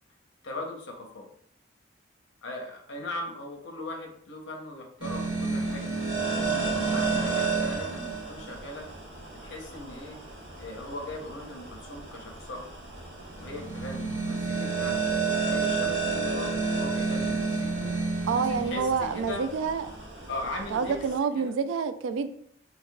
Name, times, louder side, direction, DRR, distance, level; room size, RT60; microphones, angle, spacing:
voice 1, 0.4-1.3 2.4-5.9 6.9-8.9 9.3-10.2 10.6-12.7 13.3-15.0 15.3-17.9 18.6-19.4 20.3-20.9 21.3-21.6, left 2 dB, 75° left, 2 dB, 0.7 m, -39 dB
sound 1, 5.0-21.2, right 4 dB, 70° right, 1.4 m, -31 dB
voice 2, 18.3-19.9 20.7-22.3, right 5 dB, 90° right, 11 dB, 0.3 m, -28 dB
3.5 x 3.0 x 2.3 m, 0.67 s
head